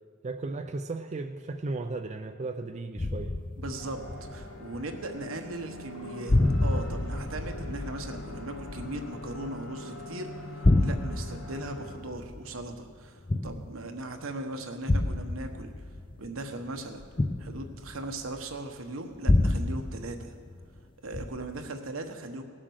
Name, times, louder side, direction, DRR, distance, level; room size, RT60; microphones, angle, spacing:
voice 1, 0.2-3.3, right 3 dB, 35° right, 7 dB, 0.4 m, -35 dB
sound 1, 3.0-5.2 5.5-6.0 6.3-10.0 10.4-14.0 14.9-18.4 19.3-20.8 21.1-21.6, left 2 dB, 25° left, 0.5 m, -29 dB
voice 2, 3.6-4.0 4.3-10.5 10.8-15.7 16.2-17.0 17.4-20.4 21.0-22.4, right 2 dB, 80° right, 5 dB, 1.2 m, -38 dB
sound 2, 3.8-12.0, left 1 dB, 75° left, 1.5 m, -43 dB
17.5 x 7.5 x 6.4 m, 2.2 s
head